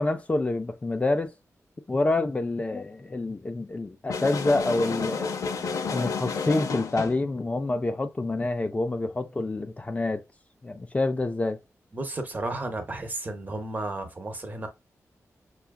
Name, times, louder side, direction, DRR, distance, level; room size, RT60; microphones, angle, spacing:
voice 1, 0.0-1.3 1.9-5.3 5.9-10.2 10.6-11.6, left 2 dB, 25° left, 0.4 m, -27 dB
sound 1, 4.1-7.3, left 5 dB, 90° left, 0.6 m, -30 dB
voice 2, 11.9-14.7, right 2 dB, 30° right, 0.8 m, -33 dB
5.6 x 2.4 x 2.2 m
wide cardioid pair, 155°, 6 cm